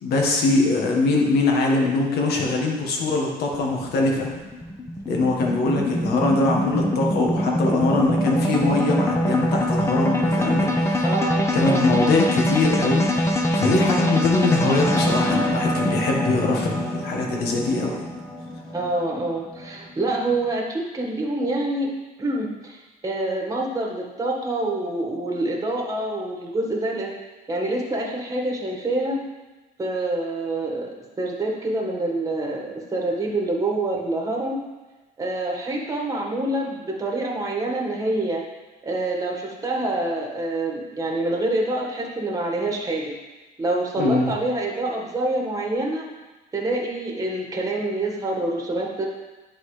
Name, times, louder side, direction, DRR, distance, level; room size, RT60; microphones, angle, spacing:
voice 1, 0.0-4.3 5.1-11.0 11.5-18.0 44.0-44.3, left 3 dB, 70° left, 0 dB, 1.4 m, -22 dB
sound 1, 3.5-19.9, left 1 dB, 15° left, 0.8 m, -24 dB
voice 2, 11.0-11.9 18.7-21.9 22.2-27.1 27.5-29.2 29.8-30.9 31.2-34.6 35.2-38.4 38.8-43.1 43.6-46.1 46.5-49.1, right 2 dB, 20° right, -1 dB, 1.5 m, -26 dB
10.5 x 4.1 x 3.2 m, 1.2 s
cardioid pair, 110°, 17 cm